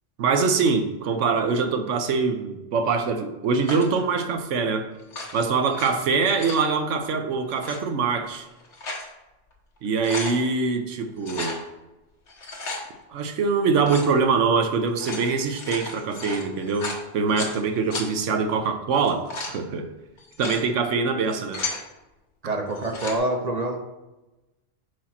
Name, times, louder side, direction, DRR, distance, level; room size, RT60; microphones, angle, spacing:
voice 1, 0.2-4.9 5.3-8.5 9.8-11.6 13.1-19.9 20.4-21.6 22.4-22.5, right 4 dB, 80° right, 7 dB, 1.1 m, -24 dB
sound 1, 3.6-4.0 5.0-5.9 6.2-6.7 7.5-7.8 8.5-9.1 9.5-9.6 9.8-10.4 11.2-11.6 12.3-12.8 13.8-14.1 14.8-17.6 17.9-18.1 18.9-19.6 20.2-20.6 21.2-21.8 22.7-23.2, left 3 dB, 70° left, 1.5 m, -34 dB
voice 2, 22.4-23.9, right 1 dB, 40° right, 3 dB, 0.7 m, -26 dB
4.8 x 4.1 x 5.7 m, 1.0 s
omnidirectional pair, 1.2 m